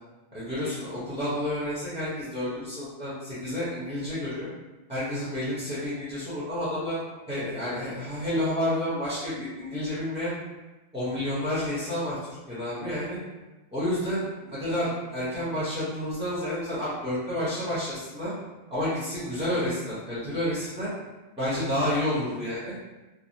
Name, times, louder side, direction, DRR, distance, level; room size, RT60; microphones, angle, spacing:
voice 1, 0.3-4.5 4.9-7.0 7.3-10.4 10.9-12.2 12.5-13.2 13.7-18.3 18.7-20.9 21.3-22.7, left 1 dB, 5° right, -11 dB, 0.8 m, -30 dB
3.3 x 2.1 x 2.7 m, 1.1 s
omnidirectional pair, 1.2 m